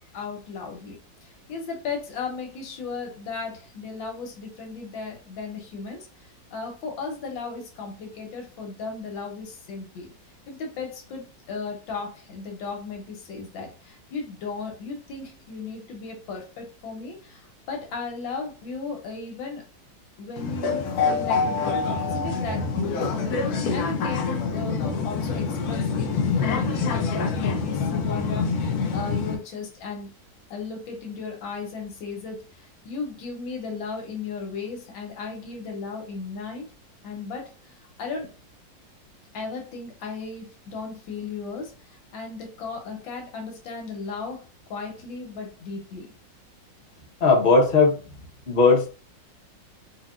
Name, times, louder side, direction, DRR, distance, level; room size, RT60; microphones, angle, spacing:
voice 1, 0.1-1.0 1.5-6.1 6.5-10.1 10.5-17.4 17.7-19.6 20.2-23.3 23.7-28.5 28.9-30.1 30.5-32.4 32.9-36.7 37.0-37.5 38.0-38.3 39.3-41.7 42.1-44.4 44.7-46.1, left 4 dB, 90° left, 2 dB, 1.7 m, -35 dB
sound 1, 20.4-29.4, left 5 dB, 65° left, 1.0 m, -26 dB
voice 2, 47.2-48.0 48.5-48.9, left 4 dB, 40° left, -1 dB, 0.8 m, -17 dB
4.0 x 2.8 x 2.5 m, 0.34 s
omnidirectional pair, 2.0 m